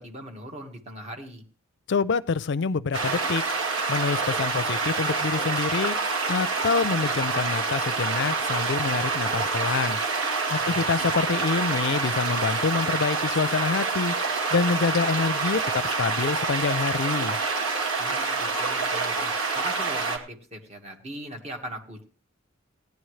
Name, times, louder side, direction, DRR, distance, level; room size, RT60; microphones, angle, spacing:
voice 1, 0.0-1.4 10.5-10.9 18.0-22.0, right 1 dB, 30° right, 2 dB, 1.8 m, -39 dB
voice 2, 1.9-3.4 3.9-6.0 6.3-10.0 10.5-14.1 14.5-17.4, left 5 dB, 55° left, 15 dB, 0.5 m, -26 dB
sound 1, 2.9-20.2, right 4 dB, 85° right, 2.0 m, -27 dB
17.0 x 10.5 x 3.2 m, 0.38 s
head